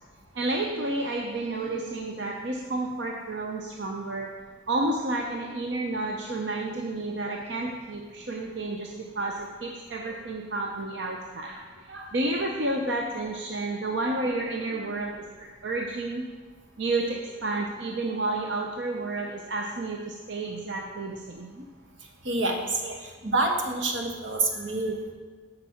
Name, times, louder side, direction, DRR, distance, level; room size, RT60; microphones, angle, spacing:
voice 1, 0.3-4.3 4.7-16.3 16.8-21.6 22.8-22.9 24.6-24.7, right 2 dB, 70° right, 0 dB, 0.7 m, -31 dB
voice 2, 22.2-22.8 23.2-25.1, right 2 dB, 85° right, 2 dB, 1.3 m, -27 dB
7.2 x 5.3 x 7.0 m, 1.4 s
head